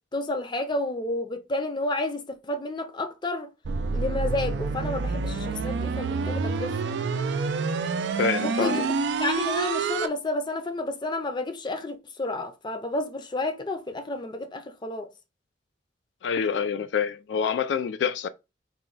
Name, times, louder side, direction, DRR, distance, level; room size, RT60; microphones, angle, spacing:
voice 1, 0.1-3.5 3.9-6.7 8.4-8.8 9.2-15.1, left 2 dB, 25° left, 0.5 m, -31 dB
sound 1, 3.6-10.1, right 4 dB, 80° right, 0.4 m, -27 dB
voice 2, 8.2-8.9 16.2-18.3, left 6 dB, 80° left, 0.3 m, -26 dB
4.2 x 2.2 x 3.8 m
head